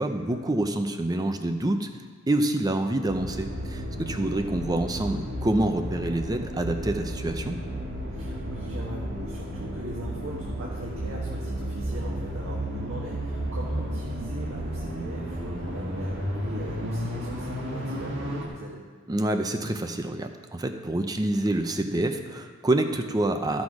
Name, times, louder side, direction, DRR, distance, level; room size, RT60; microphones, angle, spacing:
voice 1, 0.0-1.9 2.3-7.6 19.1-23.6, right 1 dB, 20° right, 6 dB, 0.5 m, -27 dB
sound 1, 3.1-18.5, equal, 60° right, 1.6 m, -33 dB
voice 2, 8.1-18.8, right 1 dB, 85° right, -4 dB, 1.4 m, -40 dB
13.0 x 6.2 x 4.9 m, 1.5 s
head